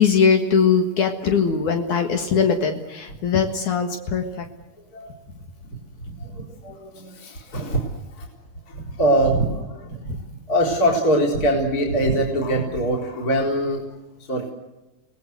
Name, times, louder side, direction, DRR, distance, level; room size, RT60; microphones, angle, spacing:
voice 1, 0.0-4.5, left 6 dB, 70° left, 5 dB, 3.1 m, -20 dB
voice 2, 6.2-7.9 8.2-8.3 8.7-10.1 10.5-13.8 14.3-14.4, right 1 dB, 25° left, 0 dB, 4.4 m, -23 dB
28.0 x 19.0 x 8.0 m, 1.0 s
omnidirectional pair, 3.7 m